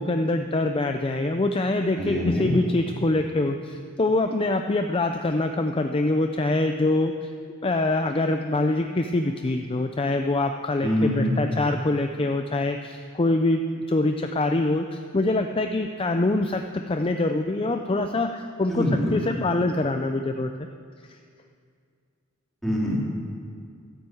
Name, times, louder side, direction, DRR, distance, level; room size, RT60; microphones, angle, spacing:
voice 1, 0.0-7.3 7.6-20.7 21.1-21.2, left 2 dB, 25° left, 6 dB, 0.5 m, -24 dB
voice 2, 2.0-2.5 10.8-11.3 18.7-19.2 22.6-22.9, left 1 dB, ahead, -6 dB, 3.5 m, -24 dB
12.5 x 10.5 x 7.8 m, 2.2 s
head